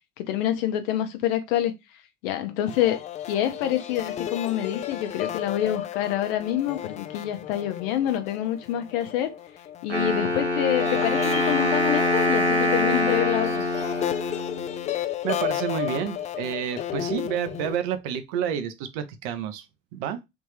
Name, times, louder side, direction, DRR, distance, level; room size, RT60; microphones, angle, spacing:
voice 1, 0.2-1.7 2.2-3.0 3.3-9.3 9.8-13.6, left 11 dB, 60° left, 0.8 m, -27 dB
sound 1, 2.7-10.3 10.7-17.8, left 11 dB, 20° left, 0.3 m, -33 dB
Wind instrument woodwind instrument, 9.9-14.9, left 1 dB, 90° right, 0.9 m, -24 dB
voice 2, 15.2-19.7 19.9-20.2, right 8 dB, 55° right, 0.7 m, -29 dB
3.5 x 2.6 x 3.2 m
figure-of-eight pair, 65°, 33 cm